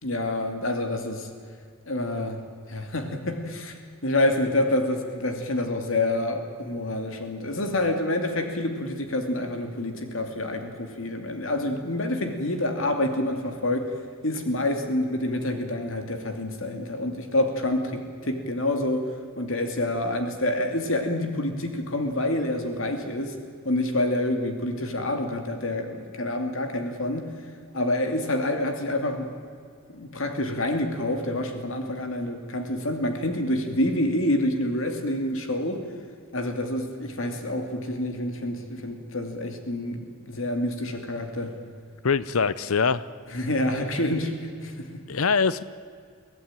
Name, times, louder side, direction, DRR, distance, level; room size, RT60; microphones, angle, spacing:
voice 1, 0.0-1.3 1.9-2.4 2.7-3.8 4.0-13.9 14.2-19.1 19.4-23.4 23.6-27.3 27.7-29.3 29.9-35.8 36.3-41.5 43.3-44.3 44.6-45.0, left 1 dB, 65° left, 5 dB, 2.6 m, -27 dB
voice 2, 42.0-43.0 45.1-45.6, left 5 dB, 85° left, 16 dB, 0.7 m, -23 dB
24.0 x 16.5 x 9.0 m, 2.2 s
head